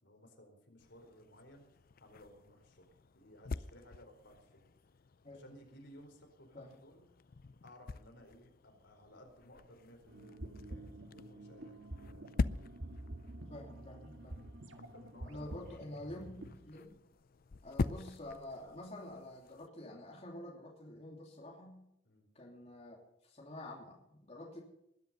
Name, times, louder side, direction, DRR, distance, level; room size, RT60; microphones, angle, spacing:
voice 1, 0.0-2.9 3.1-4.7 5.3-7.0 7.6-11.8 12.1-12.3 14.3-15.9 22.0-22.3, equal, 70° left, 3 dB, 4.7 m, -58 dB
sound 1, 0.8-19.7, left 3 dB, 50° left, 0.5 m, -45 dB
sound 2, 10.1-16.6, right 1 dB, 75° right, 1.9 m, -48 dB
voice 2, 13.4-14.4 15.2-17.0 17.6-21.8 22.3-24.6, left 1 dB, 35° left, -2 dB, 3.1 m, -48 dB
20.5 x 10.5 x 5.7 m, 0.78 s
head